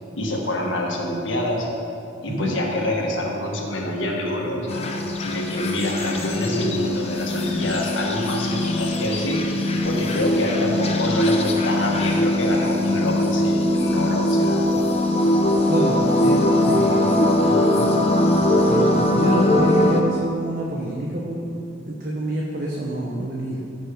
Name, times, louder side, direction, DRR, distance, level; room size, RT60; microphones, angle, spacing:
voice 1, 0.1-1.7 2.2-14.7, left 1 dB, 75° left, -1 dB, 1.6 m, -26 dB
sound 1, 4.7-20.0, left 1 dB, 30° left, 0.8 m, -21 dB
voice 2, 15.7-18.0 18.7-23.6, right 1 dB, 45° right, -3 dB, 1.0 m, -27 dB
14.0 x 5.5 x 5.1 m, 2.7 s
head